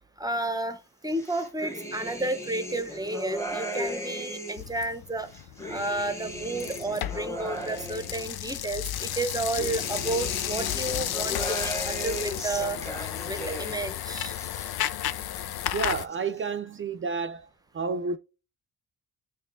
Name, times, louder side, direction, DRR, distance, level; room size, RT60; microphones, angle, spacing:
voice 1, 0.2-5.3 5.7-12.8 13.2-14.3, right 2 dB, 10° right, 0.8 m, -32 dB
sound 1, 1.1-4.7 5.2-8.6 9.1-13.9 14.2-15.1 15.4-16.2, equal, 5° left, 1.3 m, -36 dB
sound 2, 4.6-16.1, left 12 dB, 75° left, 0.6 m, -33 dB
voice 2, 15.7-17.5 17.7-18.2, right 4 dB, 35° right, 0.5 m, -30 dB
8.9 x 3.2 x 3.6 m
cardioid pair, 110°, 38 cm